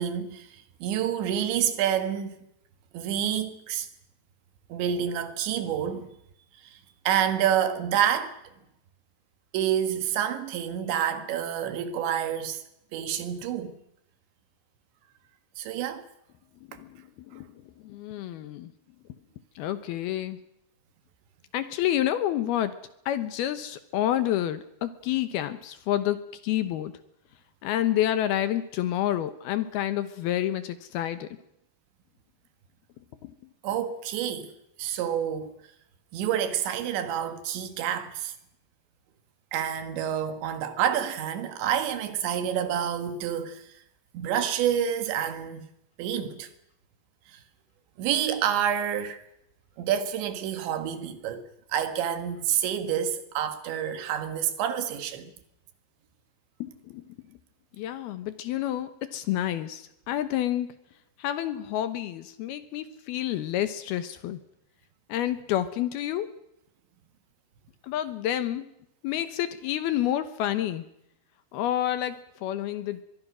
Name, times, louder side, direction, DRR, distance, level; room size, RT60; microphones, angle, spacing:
voice 1, 0.0-2.4 2.9-3.9 4.7-6.1 6.7-6.8 7.1-8.4 9.5-12.6 12.9-13.8 15.6-16.1 33.6-34.5 34.8-35.5 36.1-38.3 39.5-43.6 44.1-45.7 46.0-46.5 47.3-47.4 48.0-49.3 49.8-55.3, right 9 dB, 80° right, 3.9 m, -28 dB
voice 2, 17.8-18.7 19.6-20.4 21.5-22.7 23.1-26.2 26.4-26.9 27.6-31.3 33.2-33.3 56.6-57.0 57.8-60.7 61.2-64.4 65.1-66.3 67.8-68.6 69.0-70.8 71.5-73.0, left 12 dB, 70° left, 2.6 m, -29 dB
23.5 x 22.5 x 6.2 m
omnidirectional pair, 5.2 m